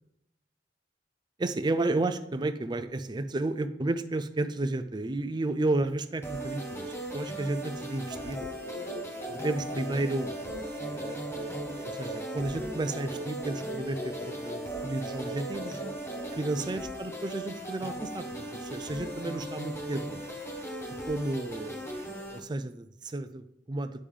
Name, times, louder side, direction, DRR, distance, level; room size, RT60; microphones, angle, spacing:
voice 1, 1.4-8.5 9.3-10.4 10.8-15.8 16.3-20.2 21.1-24.1, right 2 dB, 25° right, 11 dB, 0.4 m, -32 dB
sound 1, 6.2-22.4, right 1 dB, 15° left, 0.9 m, -38 dB
sound 2, 8.1-16.3, right 1 dB, 45° left, 1.9 m, -41 dB
8.5 x 5.5 x 3.3 m, 0.83 s
head